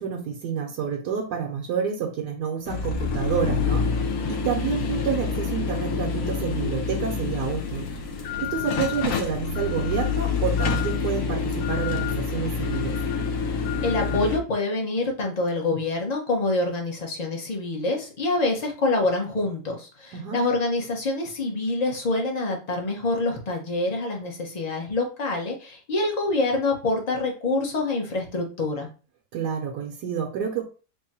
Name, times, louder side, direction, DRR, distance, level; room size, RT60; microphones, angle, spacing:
voice 1, 0.0-7.9 8.4-13.0 20.1-20.4 29.3-30.6, right 7 dB, 75° right, 2 dB, 1.2 m, -29 dB
sound 1, 2.7-14.4, left 5 dB, 65° left, 0.9 m, -27 dB
voice 2, 13.8-28.9, left 2 dB, 35° left, 1 dB, 0.7 m, -26 dB
3.6 x 2.2 x 4.1 m, 0.34 s
omnidirectional pair, 1.9 m